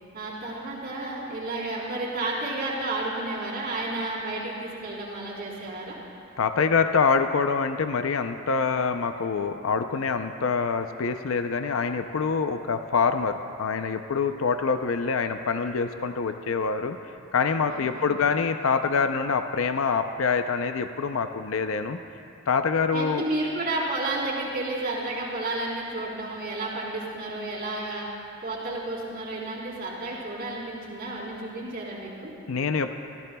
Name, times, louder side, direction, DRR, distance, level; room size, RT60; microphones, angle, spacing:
voice 1, 0.1-6.0 17.7-18.2 22.9-28.1 28.4-32.3, right 2 dB, 50° right, -5 dB, 3.7 m, -31 dB
voice 2, 6.4-17.0 17.3-22.0 22.5-23.2 32.5-32.9, left 5 dB, 70° left, 8 dB, 0.6 m, -25 dB
28.5 x 15.0 x 2.3 m, 2.6 s
head